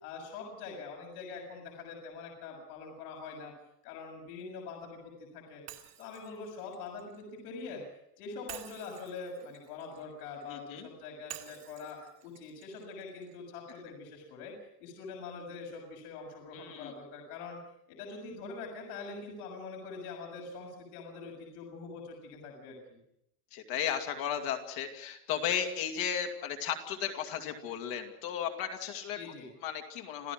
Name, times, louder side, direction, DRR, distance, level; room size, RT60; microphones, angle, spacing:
voice 1, 0.0-3.5 3.8-5.6 6.0-7.8 8.2-14.5 14.8-17.6 17.9-23.0 29.2-29.5, left 4 dB, 70° left, 0 dB, 7.0 m, -44 dB
Shatter, 5.7-7.7 8.5-10.6 11.3-13.4, right 13 dB, 35° right, 2.5 m, -50 dB
voice 2, 10.5-10.9 16.5-16.9 23.5-29.2 29.6-30.3, left 9 dB, 45° left, 6 dB, 2.5 m, -35 dB
27.5 x 16.0 x 6.3 m, 0.76 s
supercardioid pair, 170°, 47 cm